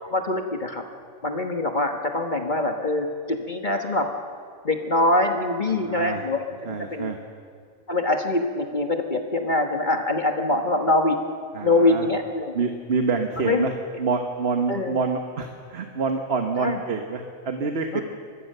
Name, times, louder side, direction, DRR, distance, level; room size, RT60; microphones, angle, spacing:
voice 1, 0.0-0.8 1.2-4.1 4.6-7.1 7.9-11.2 11.6-12.6 13.4-13.7 14.7-15.0 16.6-16.8 17.9-18.0, left 2 dB, 35° left, 4 dB, 1.5 m, -24 dB
voice 2, 5.7-6.2 6.6-7.2 11.5-12.1 12.5-13.7 14.0-18.0, right 4 dB, 50° right, 5 dB, 1.5 m, -27 dB
25.0 x 20.5 x 6.7 m, 2.1 s
omnidirectional pair, 1.4 m